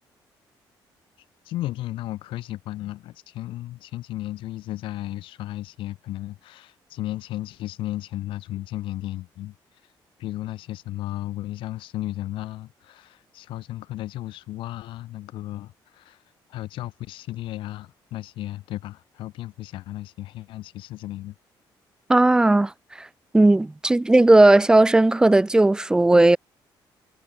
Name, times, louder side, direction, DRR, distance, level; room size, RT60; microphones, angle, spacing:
voice 1, 1.5-9.5 10.2-16.2 16.5-21.3, left 15 dB, 90° left, 2.3 m, -34 dB
voice 2, 22.1-22.7 23.0-23.1 23.3-26.4, right 2 dB, 10° right, 1.6 m, -16 dB
cardioid pair, 170°, 8 cm